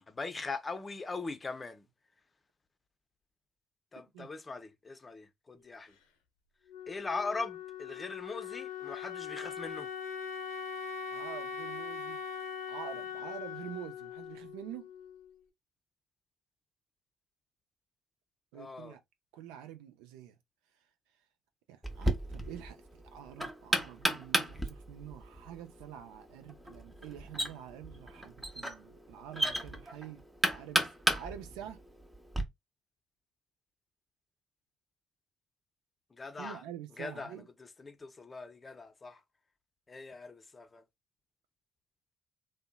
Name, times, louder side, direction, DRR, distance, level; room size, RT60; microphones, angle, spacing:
voice 1, 0.0-1.8 3.9-5.9 6.9-9.9 18.5-18.9 36.2-36.6 37.0-37.4 37.8-39.2 39.9-40.8, left 3 dB, 30° left, 0.5 m, -40 dB
Wind instrument woodwind instrument, 6.7-15.4, left 6 dB, 80° left, 0.5 m, -41 dB
voice 2, 11.1-12.2 12.7-14.9 18.5-19.0 19.3-20.4 21.7-30.2 30.5-31.8 36.4-37.5, right 10 dB, 75° right, 0.4 m, -47 dB
Knock, 21.8-32.4, right 1 dB, 15° right, 0.7 m, -34 dB
2.6 x 2.1 x 2.2 m
hypercardioid pair, 50°, 0 cm